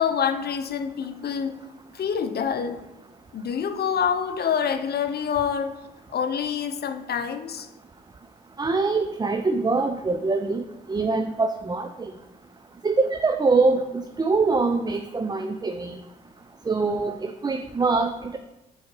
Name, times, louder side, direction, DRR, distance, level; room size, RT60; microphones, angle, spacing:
voice 1, 0.0-1.6 1.9-2.8 3.3-5.8 6.1-7.7, left 7 dB, 55° left, 9 dB, 0.7 m, -26 dB
voice 2, 8.6-12.1 12.8-16.0 16.7-18.4, right 3 dB, 20° right, 8 dB, 0.4 m, -24 dB
4.7 x 4.5 x 4.6 m, 0.97 s
hypercardioid pair, 50°, 20 cm